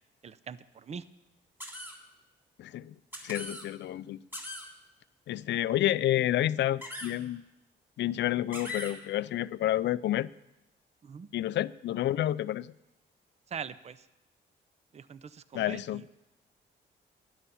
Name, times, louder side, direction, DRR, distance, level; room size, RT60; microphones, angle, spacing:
voice 1, 0.2-1.0 11.0-11.3 13.5-14.0 14.9-16.1, right 6 dB, 35° right, 0.6 m, -42 dB
sound 1, 1.6-1.9 3.1-3.7 4.3-4.7 6.8-7.1 8.5-8.9, left 1 dB, 10° right, 3.2 m, -39 dB
voice 2, 2.6-2.9 3.2-4.2 5.3-7.4 8.0-10.3 11.3-12.7 15.5-16.0, left 13 dB, 65° left, 0.4 m, -29 dB
12.5 x 10.5 x 7.0 m
cardioid pair, 90°, 20 cm